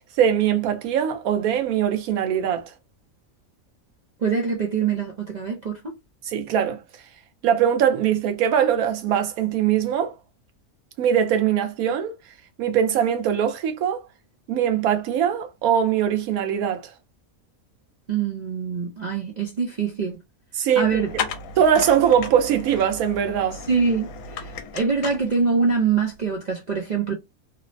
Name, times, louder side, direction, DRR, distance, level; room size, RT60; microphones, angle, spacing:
voice 1, 0.2-2.7 6.3-6.8 7.4-10.1 11.0-12.1 12.6-14.0 14.5-16.9 20.6-21.0 21.6-23.6, right 9 dB, 85° right, 1.1 m, -21 dB
voice 2, 4.2-5.9 18.1-20.2 20.8-21.1 23.7-27.1, right 5 dB, 55° right, 0.4 m, -24 dB
sound 1, 20.8-25.8, left 5 dB, 75° left, 1.0 m, -35 dB
3.0 x 2.0 x 2.5 m
omnidirectional pair, 1.5 m